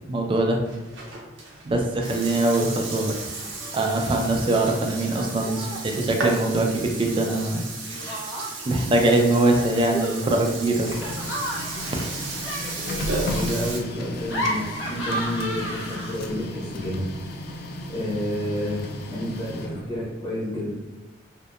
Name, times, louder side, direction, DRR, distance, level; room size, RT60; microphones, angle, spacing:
voice 1, 0.1-0.6 1.6-3.1 3.7-7.6 8.7-10.9, right 2 dB, 25° right, 2 dB, 0.3 m, -22 dB
Burping eructation, 0.6-13.8, right 3 dB, 85° right, 0.6 m, -34 dB
Laughter, 3.4-3.8 4.1-4.7 5.1-5.9 7.2-8.8 9.4-16.4, equal, 85° left, 0.7 m, -34 dB
Printer, 10.4-20.2, left 1 dB, 55° left, 0.3 m, -35 dB
voice 2, 13.2-17.1 17.4-20.7, left 1 dB, 20° left, -7 dB, 0.8 m, -30 dB
2.7 x 2.1 x 2.3 m, 1.2 s
head